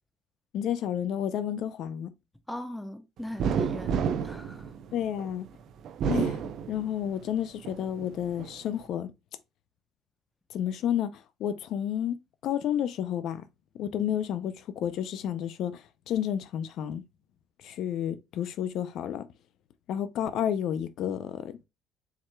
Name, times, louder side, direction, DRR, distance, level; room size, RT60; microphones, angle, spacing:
voice 1, 0.5-2.1 4.9-5.5 6.1-9.1 10.5-12.2 12.4-13.4 13.8-17.0 17.6-19.2 19.9-21.6, left 10 dB, 65° left, 0.5 m, -31 dB
voice 2, 2.5-4.7, left 1 dB, 5° left, 0.8 m, -40 dB
sound 1, 3.4-5.3 5.8-7.2 7.6-8.5, right 7 dB, 60° right, 0.5 m, -30 dB
4.7 x 4.4 x 2.2 m
cardioid pair, 105°, 0 cm